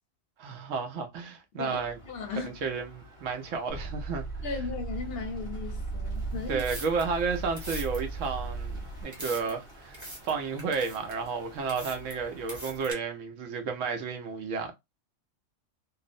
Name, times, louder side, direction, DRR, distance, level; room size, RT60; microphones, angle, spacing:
voice 1, 0.4-2.0 2.4-4.3 6.5-14.7, right 5 dB, 85° right, 1.1 m, -32 dB
Crow, 1.6-13.1, equal, 55° right, 1.3 m, -52 dB
voice 2, 2.1-2.5 4.4-6.6, left 4 dB, 60° left, 0.7 m, -36 dB
sound 1, 3.7-9.0, right 3 dB, 45° left, 0.4 m, -37 dB
sound 2, 6.4-12.9, right 1 dB, 25° right, 0.9 m, -44 dB
3.0 x 2.0 x 2.5 m
omnidirectional pair, 1.3 m